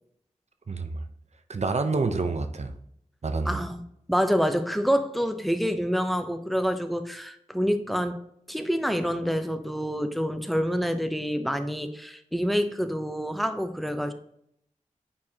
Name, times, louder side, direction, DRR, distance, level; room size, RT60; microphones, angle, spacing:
voice 1, 0.7-1.0 1.5-2.7 3.2-3.6, right 3 dB, 55° right, 7 dB, 0.8 m, -28 dB
voice 2, 3.5-3.8 4.1-8.2 8.5-14.1, equal, ahead, 8 dB, 0.8 m, -27 dB
8.5 x 4.7 x 2.9 m, 0.71 s
cardioid pair, 50°, 13 cm